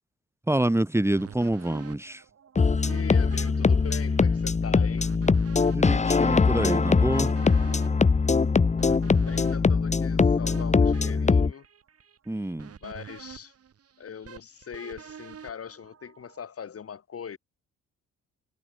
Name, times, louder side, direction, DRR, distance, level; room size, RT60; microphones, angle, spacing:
voice 1, 0.5-2.2 5.7-7.3 12.3-12.7, right 1 dB, 10° right, 2.9 m, -26 dB
sound 1, 1.2-16.4, right 8 dB, 50° right, 5.1 m, -47 dB
sound 2, 2.6-11.5, left 4 dB, 25° left, 1.1 m, -22 dB
voice 2, 2.8-5.1 8.9-11.7 12.8-13.5 14.0-17.4, left 7 dB, 50° left, 6.0 m, -41 dB
cardioid pair, 90°, 30 cm